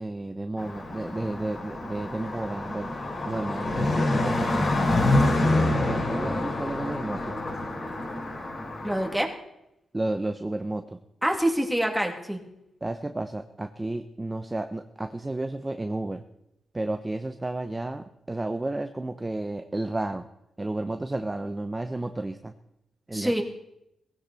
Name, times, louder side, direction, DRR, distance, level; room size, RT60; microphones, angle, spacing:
voice 1, 0.0-2.9 3.2-4.6 5.4-7.4 9.9-11.0 12.8-16.2 16.7-20.3 20.6-22.5 23.1-23.4, right 2 dB, 15° right, 7 dB, 0.9 m, -32 dB
Car passing by, 0.6-9.1, left 2 dB, 45° left, 5.3 m, -27 dB
voice 2, 8.8-9.3 11.2-12.4 23.1-23.4, right 1 dB, ahead, 2 dB, 2.6 m, -26 dB
18.5 x 16.5 x 4.2 m, 0.83 s
cardioid pair, 95°, 0 cm